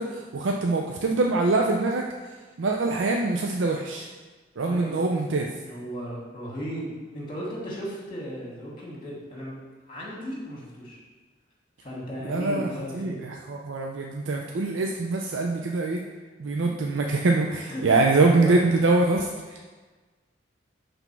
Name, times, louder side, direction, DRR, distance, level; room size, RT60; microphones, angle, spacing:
voice 1, 0.0-2.1 2.6-4.1 4.6-5.5 12.2-12.7 12.9-16.0 16.4-19.7, right 3 dB, 90° right, 1 dB, 0.5 m, -24 dB
voice 2, 4.7-5.2 5.6-11.0 11.8-13.1 17.6-18.5, equal, 25° left, -4 dB, 1.6 m, -36 dB
6.0 x 3.4 x 5.8 m, 1.3 s
head